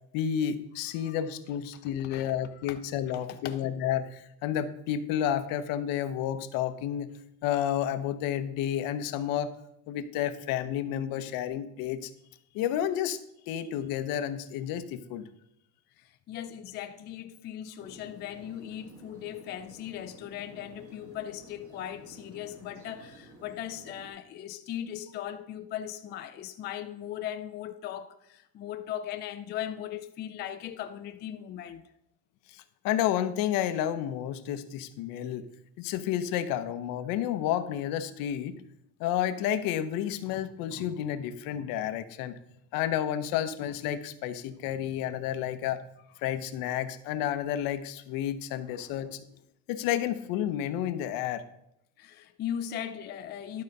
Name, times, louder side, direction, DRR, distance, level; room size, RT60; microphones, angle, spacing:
voice 1, 0.1-7.1 7.4-9.5 9.9-12.1 12.5-13.2 13.5-15.2 32.5-35.4 35.8-38.6 39.0-42.3 42.7-45.8 46.2-49.2 49.7-51.4, left 10 dB, 60° left, 0.8 m, -31 dB
voice 2, 1.8-2.3 2.7-2.8 3.1-3.7 16.0-31.8 48.7-48.9 52.0-53.6, left 10 dB, 30° left, 0.4 m, -38 dB
sound 1, 17.8-24.1, right 1 dB, 35° right, 2.0 m, -52 dB
11.5 x 4.0 x 5.3 m
cardioid pair, 140°, 38 cm